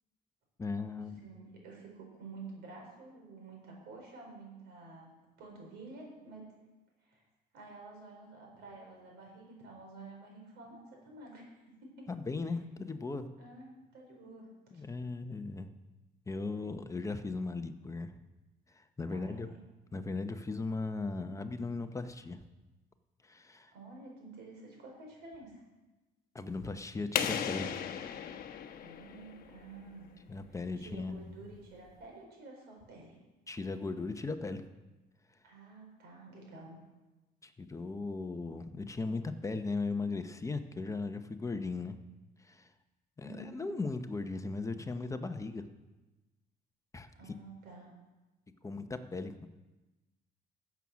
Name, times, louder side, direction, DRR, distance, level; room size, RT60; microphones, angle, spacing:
voice 1, 0.6-1.2 12.1-13.3 14.7-15.7 16.3-18.1 18.7-19.5 19.9-22.4 23.2-23.7 26.3-27.7 30.3-31.5 33.5-34.6 37.4-41.9 42.4-42.7 43.2-45.7 46.9-47.3 48.6-49.5, left 3 dB, 20° left, 8 dB, 0.8 m, -37 dB
voice 2, 1.2-5.1 5.4-6.5 7.0-7.2 7.5-11.5 11.8-12.1 13.4-14.5 14.7-14.8 19.1-19.6 23.7-25.6 28.8-30.1 30.5-33.1 35.4-36.7 43.2-43.7 47.1-47.9, right 3 dB, 85° right, 0 dB, 5.0 m, -50 dB
sound 1, 27.1-29.8, left 8 dB, 60° left, 1.0 m, -36 dB
15.0 x 7.2 x 6.2 m, 1.1 s
cardioid pair, 110°, 17 cm